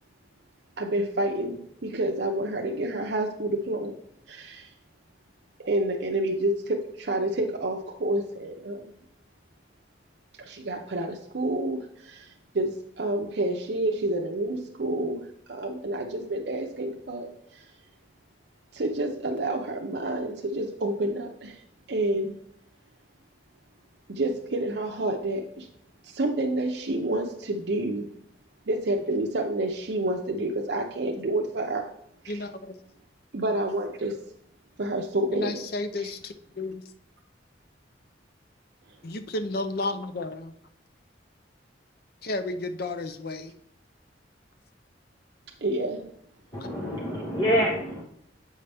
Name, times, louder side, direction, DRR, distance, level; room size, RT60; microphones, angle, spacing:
voice 1, 0.8-3.9 4.3-4.7 5.6-8.9 10.4-17.7 18.7-21.6 21.9-22.4 24.1-25.7 26.0-28.1 28.7-31.8 32.2-32.4 33.3-34.1 34.8-35.6 36.0-36.1 45.6-46.1, right 1 dB, 65° right, 2 dB, 0.6 m, -29 dB
voice 2, 32.3-32.7 35.3-36.8 39.0-40.5 42.2-43.5 46.6-46.7, left 2 dB, 55° left, 10 dB, 0.6 m, -32 dB
voice 3, 46.5-48.0, equal, 25° left, -3 dB, 0.9 m, -26 dB
7.9 x 5.5 x 3.4 m, 0.69 s
head